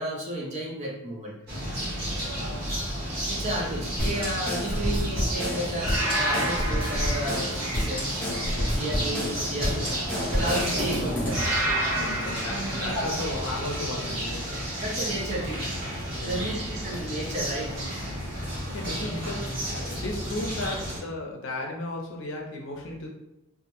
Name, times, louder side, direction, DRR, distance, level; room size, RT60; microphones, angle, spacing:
voice 1, 0.0-1.3 3.3-8.2 8.7-10.0 10.3-11.4 14.8-15.7 16.2-17.7, right 1 dB, 30° right, -2 dB, 0.4 m, -32 dB
sound 1, 1.5-21.0, equal, 50° right, 0.9 m, -32 dB
sound 2, 1.7-2.1 5.9-8.0 11.3-13.3, right 1 dB, 85° right, 0.7 m, -31 dB
voice 2, 2.1-2.9 8.5-9.2 11.9-14.8 16.2-16.8 18.7-23.1, left 2 dB, 60° left, 0 dB, 0.5 m, -35 dB
sound 3, 4.0-11.5, equal, 10° left, 0.7 m, -30 dB
2.1 x 2.0 x 2.9 m, 0.87 s
head